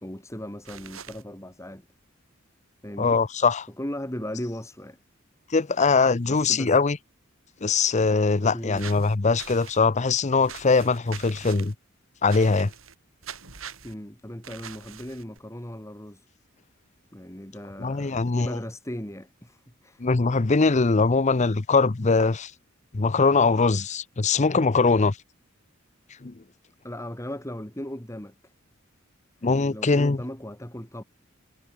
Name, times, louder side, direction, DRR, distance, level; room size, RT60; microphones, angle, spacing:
voice 1, 0.0-1.8 2.8-3.2 3.8-5.0 6.2-6.8 8.5-8.9 13.8-16.3 17.1-20.0 26.8-28.3 29.4-31.0, left 1 dB, 15° left, 3.3 m, -37 dB
sound 1, 0.6-1.2 8.8-9.8 10.4-11.7 12.3-13.0 13.2-13.9 14.4-15.4, right 7 dB, 90° right, 7.3 m, -43 dB
voice 2, 3.0-3.7 5.5-7.0 7.6-11.7 12.2-12.7 17.8-18.5 20.0-22.5 22.9-25.2 26.2-26.3 29.4-30.2, left 4 dB, 35° left, 0.7 m, -22 dB
head